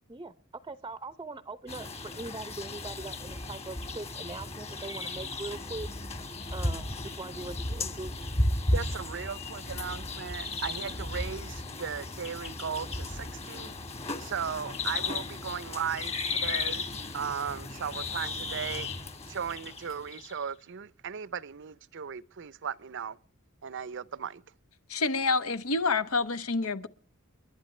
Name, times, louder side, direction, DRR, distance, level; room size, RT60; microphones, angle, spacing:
voice 1, 0.6-5.9 6.5-6.9 7.2-8.1, right 2 dB, 20° right, 0.6 m, -41 dB
sound 1, 1.7-20.4, left 2 dB, 30° left, 1.6 m, -35 dB
voice 2, 8.7-13.7 14.2-16.8 17.1-18.9 19.3-23.2 23.6-24.4, right 7 dB, 60° right, 0.6 m, -37 dB
voice 3, 24.9-26.9, left 3 dB, 85° left, 1.0 m, -28 dB
30.0 x 11.5 x 3.2 m
head